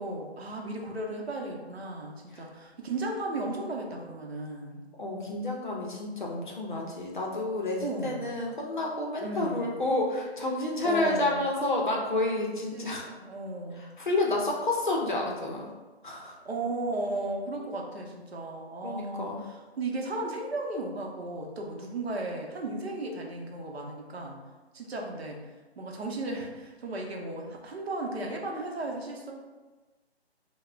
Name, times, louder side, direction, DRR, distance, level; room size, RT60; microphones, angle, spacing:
voice 1, 0.0-4.8 7.8-8.3 9.2-9.8 10.8-11.5 12.7-13.9 16.4-24.4 24.7-25.4 25.8-29.3, right 2 dB, 70° right, 1 dB, 0.6 m, -35 dB
voice 2, 5.0-13.0 13.8-15.7 16.0-16.4 18.8-19.4, left 2 dB, 50° left, -2 dB, 0.5 m, -30 dB
3.2 x 2.0 x 2.3 m, 1.2 s
hypercardioid pair, 175°, 33 cm